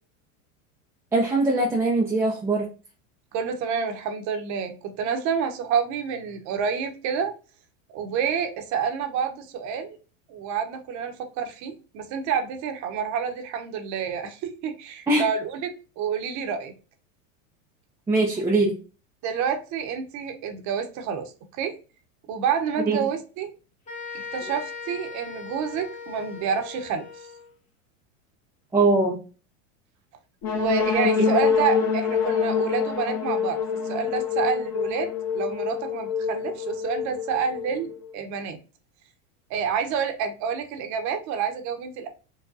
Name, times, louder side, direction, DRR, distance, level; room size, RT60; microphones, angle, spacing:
voice 1, 1.1-2.7 15.1-15.2 18.1-18.8 22.9-23.0 28.7-29.2, right 2 dB, 5° right, -4 dB, 0.3 m, -21 dB
voice 2, 3.3-7.3 7.9-10.0 10.3-16.7 19.2-21.8 22.3-23.5 24.3-27.0 30.5-33.6 33.8-38.6 39.5-42.1, right 7 dB, 45° right, 6 dB, 0.8 m, -28 dB
sound 1, 23.9-27.5, left 5 dB, 15° left, 0.8 m, -39 dB
sound 2, 30.4-38.1, left 6 dB, 50° left, 1.2 m, -26 dB
4.7 x 2.2 x 2.6 m, 0.35 s
supercardioid pair, 120°, 42 cm